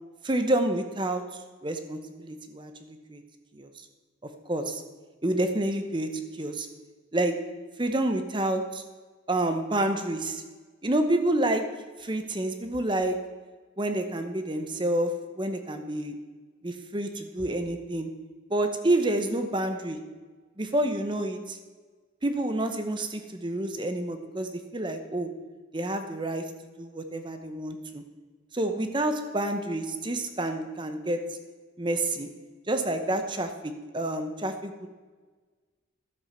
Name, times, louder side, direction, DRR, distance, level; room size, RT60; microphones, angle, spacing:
voice 1, 0.2-1.2 1.6-3.2 3.5-3.7 4.5-4.8 5.2-6.1 6.4-6.7 7.1-7.4 7.8-8.8 9.3-10.4 10.8-11.6 12.0-13.2 13.8-15.1 15.4-16.1 16.6-18.1 18.5-20.0 20.6-21.6 22.2-25.3 25.7-26.4 26.8-28.0 28.5-31.2 31.8-32.3 32.7-34.9, right 1 dB, 25° right, 7 dB, 0.8 m, -28 dB
12.0 x 7.8 x 5.8 m, 1.4 s
head